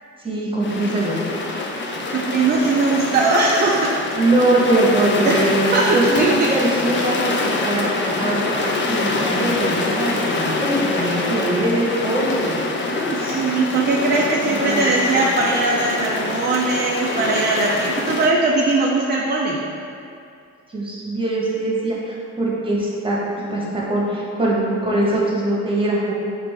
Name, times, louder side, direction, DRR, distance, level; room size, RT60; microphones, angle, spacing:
voice 1, 0.2-1.2 4.2-12.5 12.9-13.1 14.5-15.0 20.7-26.1, right 1 dB, 15° right, -4 dB, 1.0 m, -22 dB
sound 1, 0.6-18.3, left 2 dB, 40° left, 0.5 m, -25 dB
voice 2, 2.1-3.9 5.3-5.4 5.7-6.5 13.1-19.6, right 3 dB, 35° right, -2 dB, 0.4 m, -20 dB
5.3 x 2.4 x 3.5 m, 2.5 s
cardioid pair, 90°, 30 cm